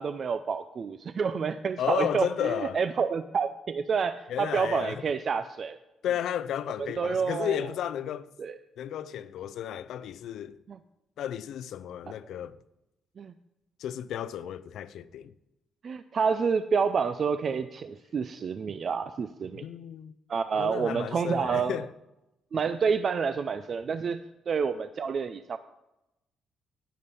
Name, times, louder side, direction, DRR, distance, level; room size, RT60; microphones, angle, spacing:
voice 1, 0.0-5.8 6.8-7.6 8.4-8.5 10.7-10.8 13.2-13.3 15.8-19.6 20.3-21.8 22.5-25.6, right 6 dB, 50° right, 0.4 m, -29 dB
voice 2, 1.8-2.8 4.3-5.1 6.0-8.3 8.8-10.6 11.2-12.6 13.8-15.3 19.6-20.1 20.5-21.9, left 10 dB, 75° left, 0.4 m, -33 dB
9.8 x 8.3 x 5.4 m
cardioid pair, 90°, 0 cm